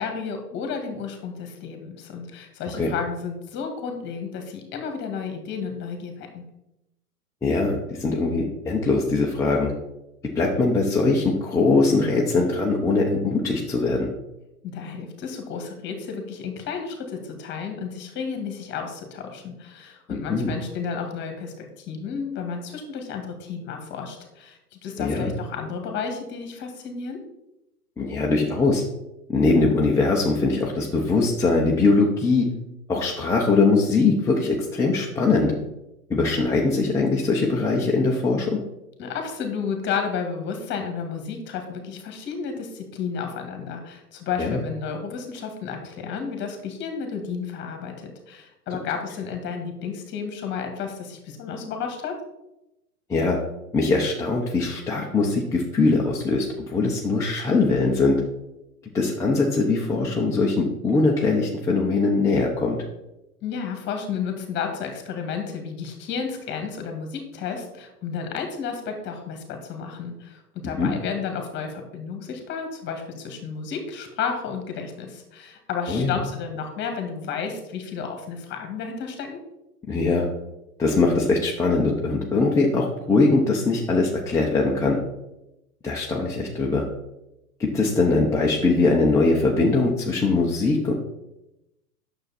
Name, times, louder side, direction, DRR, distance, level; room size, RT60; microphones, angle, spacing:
voice 1, 0.0-6.4 14.6-27.2 39.0-52.2 63.4-79.4, left 6 dB, 25° left, 5 dB, 1.9 m, -32 dB
voice 2, 7.4-9.7 10.3-14.1 20.1-20.5 25.0-25.3 28.0-28.8 29.3-32.5 32.9-35.5 36.1-38.6 44.4-44.6 53.1-53.4 53.7-58.2 58.9-62.8 70.6-70.9 75.9-76.2 79.9-80.3 80.8-85.0 85.8-86.8 87.6-90.9, left 3 dB, 5° left, -4 dB, 0.8 m, -21 dB
9.0 x 6.7 x 4.2 m, 0.90 s
figure-of-eight pair, 110°, 45 cm